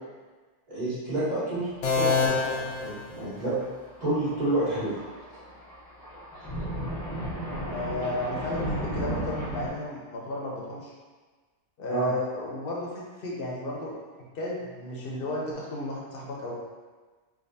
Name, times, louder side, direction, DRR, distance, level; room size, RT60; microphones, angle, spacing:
voice 1, 0.7-1.7 1.9-3.6 4.0-4.9 11.9-12.1, right 2 dB, 35° right, -13 dB, 1.7 m, -29 dB
Thunder, 1.7-2.1 2.3-2.4 3.4-9.7, right 1 dB, 30° left, 0.4 m, -35 dB
sound 1, 1.8-3.7, left 4 dB, 85° left, 1.0 m, -27 dB
voice 2, 7.6-10.9 11.8-13.9 14.3-16.5, left 1 dB, 55° left, -4 dB, 0.9 m, -33 dB
3.5 x 2.5 x 2.7 m, 1.4 s
omnidirectional pair, 1.2 m